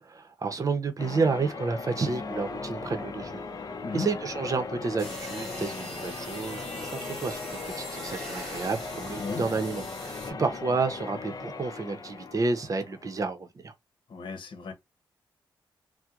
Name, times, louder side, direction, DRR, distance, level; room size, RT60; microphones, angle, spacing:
voice 1, 0.0-3.4 3.9-13.7, right 4 dB, 40° right, 0.8 m, -30 dB
Church bell, 1.0-13.3, left 4 dB, 45° left, 0.7 m, -38 dB
sound 1, 5.0-10.3, equal, 5° left, 2.2 m, -42 dB
voice 2, 14.1-14.7, left 4 dB, 65° left, 1.0 m, -35 dB
4.3 x 2.2 x 2.5 m
cardioid pair, 80°, 9 cm